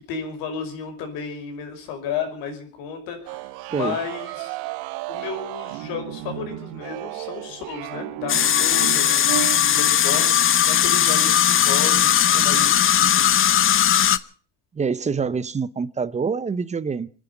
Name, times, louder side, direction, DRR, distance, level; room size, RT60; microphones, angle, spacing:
voice 1, 0.0-4.6 5.1-13.4, left 6 dB, 75° left, 5.6 m, -33 dB
sound 1, 3.3-9.6, right 17 dB, 80° right, 0.9 m, -33 dB
sound 2, 8.3-14.2, left 10 dB, 35° left, 0.8 m, -18 dB
voice 2, 14.7-17.1, right 5 dB, 20° right, 0.8 m, -26 dB
26.5 x 10.0 x 5.3 m
cardioid pair, 115°, 35 cm